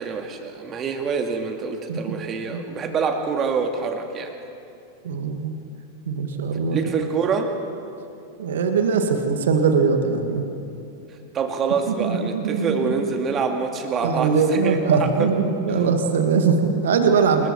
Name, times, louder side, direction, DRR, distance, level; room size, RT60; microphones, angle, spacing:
voice 1, 0.0-4.3 6.7-7.5 11.3-15.3 17.4-17.5, right 5 dB, 25° right, 4 dB, 2.3 m, -26 dB
voice 2, 5.0-5.5 6.1-6.9 8.4-10.5 11.9-13.0 14.0-17.5, right 5 dB, 60° right, 6 dB, 1.9 m, -21 dB
27.5 x 21.0 x 4.5 m, 2.7 s
figure-of-eight pair, 90°, 0 cm